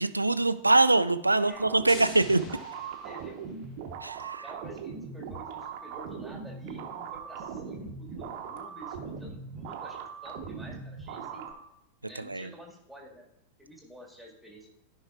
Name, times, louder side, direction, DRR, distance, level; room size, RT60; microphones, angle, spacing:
voice 1, 0.0-2.4 4.0-4.4 12.3-12.5, right 2 dB, 85° right, 12 dB, 0.3 m, -23 dB
sound 1, 1.5-11.5, right 6 dB, 45° right, 0.9 m, -40 dB
sound 2, 1.9-3.7, left 3 dB, 35° left, 1.3 m, -45 dB
voice 2, 3.0-3.4 4.4-11.5 12.0-13.3 13.6-14.7, right 1 dB, ahead, -2 dB, 1.8 m, -49 dB
13.5 x 5.5 x 2.4 m, 0.85 s
figure-of-eight pair, 90°, 0 cm